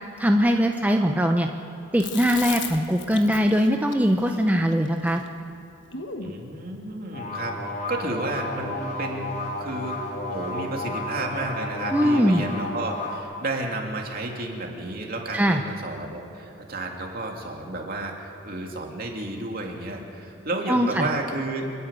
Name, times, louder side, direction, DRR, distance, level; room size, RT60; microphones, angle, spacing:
voice 1, 0.2-1.5 1.9-5.2 11.9-12.4 15.3-15.6 20.7-21.1, equal, 10° right, 3 dB, 0.7 m, -21 dB
Chewing mastication, 2.0-6.4, left 6 dB, 65° left, 1.3 m, -37 dB
voice 2, 6.2-21.7, right 2 dB, 50° right, 1 dB, 2.7 m, -32 dB
sound 1, 7.1-13.2, left 2 dB, 45° left, 3.6 m, -32 dB
28.5 x 10.5 x 9.0 m, 2.7 s
head